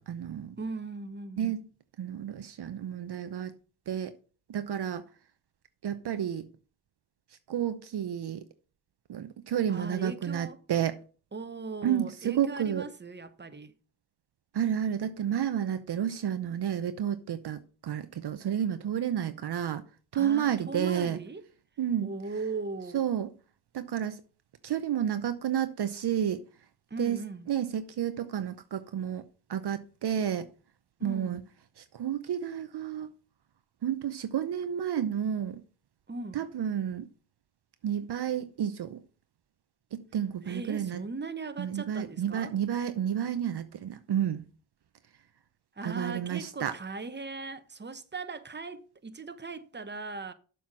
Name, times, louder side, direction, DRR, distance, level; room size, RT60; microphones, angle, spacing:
voice 1, 0.0-0.5 1.4-1.6 2.0-3.5 3.9-4.1 4.5-5.0 5.8-6.5 7.5-8.4 9.1-11.0 11.8-12.8 14.5-19.8 20.1-21.2 21.8-22.1 22.9-23.3 23.7-24.2 24.6-26.4 27.0-27.2 27.5-29.2 29.5-30.5 31.0-31.4 31.9-33.1 33.8-35.6 36.3-37.1 37.8-39.0 39.9-41.0 41.6-44.4 45.8-46.7, right 9 dB, 55° right, 0.8 m, -31 dB
voice 2, 0.6-1.5 9.7-10.6 11.3-13.7 20.1-21.5 22.0-23.0 26.9-27.5 31.0-31.4 36.1-36.4 40.4-42.5 45.8-50.3, right 3 dB, 20° right, 1.1 m, -38 dB
7.2 x 5.8 x 6.2 m
supercardioid pair, 50°, 47 cm